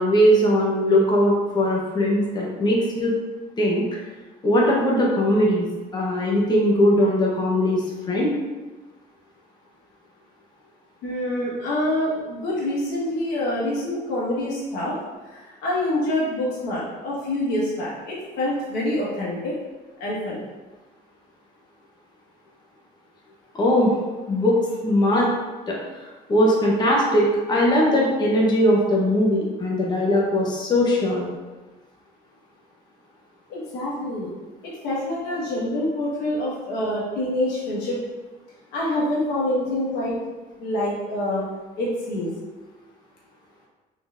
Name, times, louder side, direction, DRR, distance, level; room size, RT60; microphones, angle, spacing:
voice 1, 0.0-3.1 3.6-4.0 4.4-5.7 5.9-8.3 23.5-23.9 24.3-24.6 24.8-25.3 25.7-25.8 26.3-31.2, equal, 25° left, -3 dB, 0.8 m, -20 dB
voice 2, 11.0-15.0 15.3-19.5 20.0-20.5 33.5-34.3 34.6-38.0 38.7-40.1 40.6-41.4 41.8-42.3, left 1 dB, 90° left, -5 dB, 1.4 m, -26 dB
3.9 x 3.9 x 2.5 m, 1.2 s
cardioid pair, 110°, 17 cm